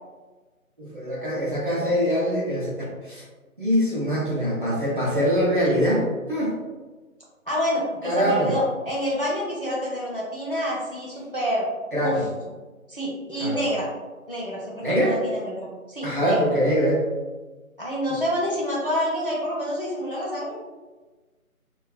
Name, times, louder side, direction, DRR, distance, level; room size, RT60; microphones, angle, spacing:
voice 1, 0.8-2.7 3.0-3.2 3.6-6.5 8.0-8.5 11.9-12.2 13.4-13.6 14.8-15.2 16.0-17.0, equal, 35° right, -7 dB, 0.5 m, -23 dB
voice 2, 7.5-11.6 12.0-12.2 12.9-13.9 14.3-16.5 17.8-20.6, equal, 40° left, -5 dB, 0.5 m, -28 dB
2.4 x 2.3 x 2.3 m, 1.3 s
figure-of-eight pair, 160°, 43 cm